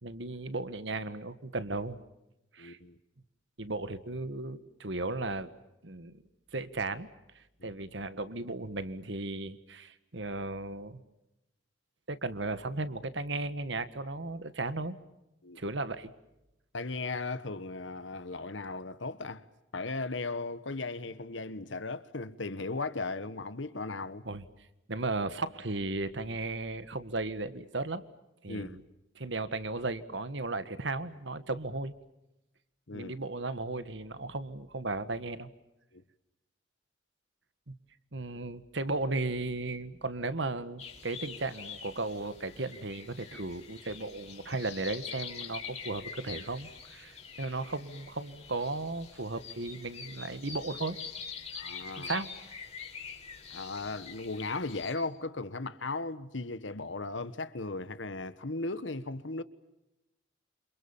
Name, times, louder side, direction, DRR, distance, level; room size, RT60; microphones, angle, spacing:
voice 1, 0.0-2.0 2.5-2.8 3.6-5.5 5.8-6.1 6.5-7.1 7.6-11.0 12.1-14.9 15.6-16.1 24.2-24.4 24.9-28.0 28.4-28.8 29.2-31.9 32.9-35.5 37.7-37.8 38.1-51.0 52.0-52.3, right 2 dB, 70° right, 1.7 m, -35 dB
voice 2, 2.6-3.0 7.6-7.7 15.4-15.6 16.7-19.5 19.7-24.3 28.5-28.8 32.9-33.1 35.9-36.0 51.5-52.1 53.5-59.4, left 3 dB, 80° left, 1.4 m, -37 dB
sound 1, 40.8-54.9, left 6 dB, 35° left, 4.1 m, -45 dB
28.5 x 27.5 x 7.3 m
head